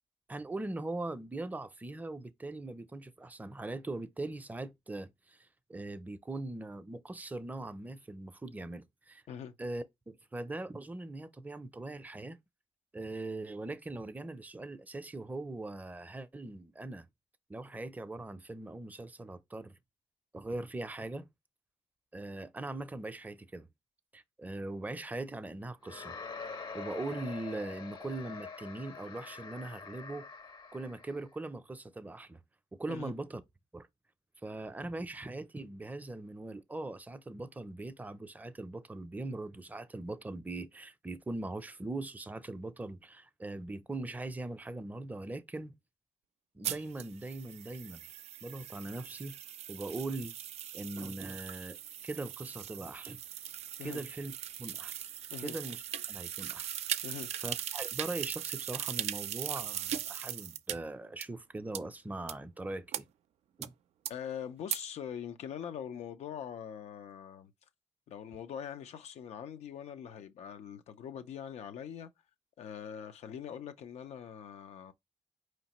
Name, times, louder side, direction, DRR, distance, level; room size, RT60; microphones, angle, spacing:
voice 1, 0.3-9.2 9.6-12.4 12.9-17.1 17.5-19.8 20.3-21.3 22.1-23.7 24.1-26.1 26.7-30.3 30.7-32.4 32.7-33.4 33.7-33.9 34.4-45.7 46.5-48.1 48.4-49.4 49.7-50.3 50.7-51.8 52.0-53.2 53.8-54.3 54.6-55.0 55.4-55.8 56.1-56.8 57.4-63.1 63.6-63.7, right 2 dB, 15° right, 0.5 m, -41 dB
sound 1, 25.8-31.2, left 5 dB, 45° left, 0.7 m, -45 dB
sound 2, 46.6-60.7 61.2-61.3 61.7-61.8 62.3-62.4 62.9-63.0 63.6-63.7 64.0-64.1 64.7-64.8, right 10 dB, 80° right, 0.4 m, -39 dB
voice 2, 64.1-67.5 68.1-72.1 72.6-74.9, left 8 dB, 85° left, 0.6 m, -43 dB
4.8 x 3.1 x 2.9 m
cardioid pair, 115°, 11 cm